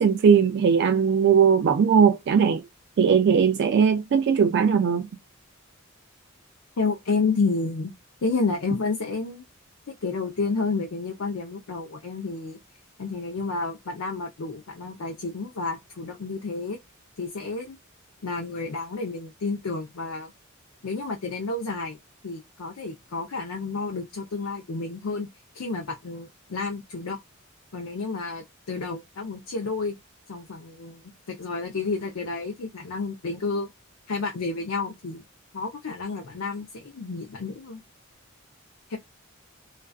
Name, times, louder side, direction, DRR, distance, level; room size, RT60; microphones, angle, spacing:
voice 1, 0.0-2.7 3.0-5.1, right 6 dB, 55° right, 0.3 m, -19 dB
voice 2, 6.8-7.9 8.2-9.4 9.9-12.6 13.0-16.8 17.2-17.8 18.2-20.3 20.8-22.0 22.2-25.3 25.5-27.2 27.7-29.9 30.3-33.7 34.1-35.2 35.5-37.8 38.9-39.0, left 3 dB, 80° left, 0.5 m, -30 dB
2.5 x 2.3 x 2.2 m
head